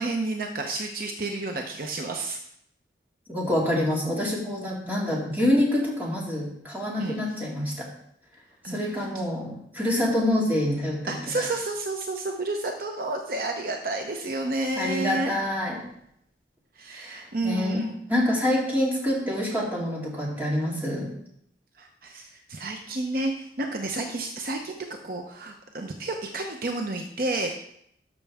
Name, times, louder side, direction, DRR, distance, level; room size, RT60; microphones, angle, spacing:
voice 1, 0.0-2.4 7.0-7.2 8.6-9.0 11.1-15.3 16.8-18.0 21.8-24.8 25.0-27.6, right 2 dB, 55° right, 3 dB, 0.8 m, -30 dB
voice 2, 3.3-7.9 8.7-11.5 14.8-15.8 16.9-21.1, left 1 dB, 10° right, -4 dB, 2.2 m, -26 dB
12.5 x 6.1 x 3.5 m, 0.71 s
head